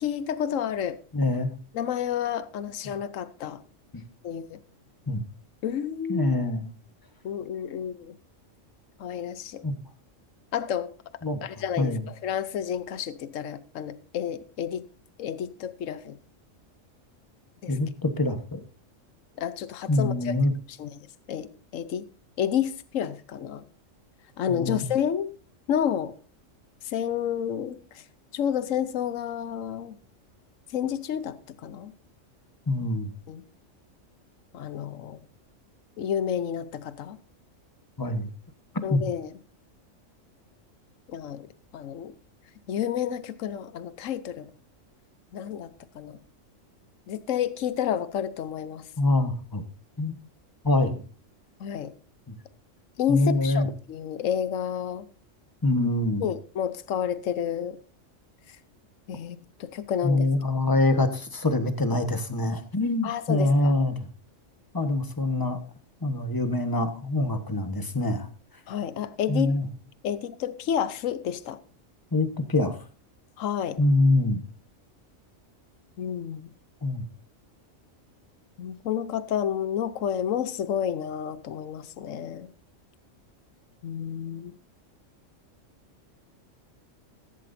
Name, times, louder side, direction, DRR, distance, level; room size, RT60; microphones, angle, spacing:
voice 1, 0.0-1.0 1.7-3.6 4.2-4.6 5.6-6.4 7.2-8.1 9.0-9.6 10.5-10.9 11.4-14.8 15.2-16.2 17.6-17.8 19.4-20.4 20.7-20.9 21.3-22.1 22.4-23.6 24.4-25.3 25.7-26.1 26.8-28.0 28.3-29.9 30.7-31.9 33.3-33.4 34.5-35.2 36.0-37.2 38.8-39.3 41.1-41.5 41.7-42.1 42.7-44.5 45.3-46.2 47.1-48.9 51.6-51.9 53.0-55.1 56.2-57.8 58.5-58.6 59.1-60.3 63.0-63.8 68.7-69.6 70.0-71.6 73.4-73.8 76.0-76.5 78.6-82.5 83.8-84.5, left 9 dB, 80° left, 1.2 m, -30 dB
voice 2, 1.1-1.5 5.1-5.2 6.1-6.7 9.6-9.7 11.2-11.4 11.8-12.0 17.7-18.6 19.9-20.5 24.5-24.8 32.7-33.1 38.0-38.3 38.9-39.0 49.0-49.6 50.0-50.1 50.6-51.0 52.3-52.4 53.1-53.7 55.6-56.3 60.0-64.1 64.7-65.6 66.0-68.3 69.3-69.6 72.1-72.8 73.8-74.4 76.8-77.0, left 2 dB, 15° left, 1.3 m, -25 dB
15.0 x 15.0 x 2.7 m
omnidirectional pair, 1.3 m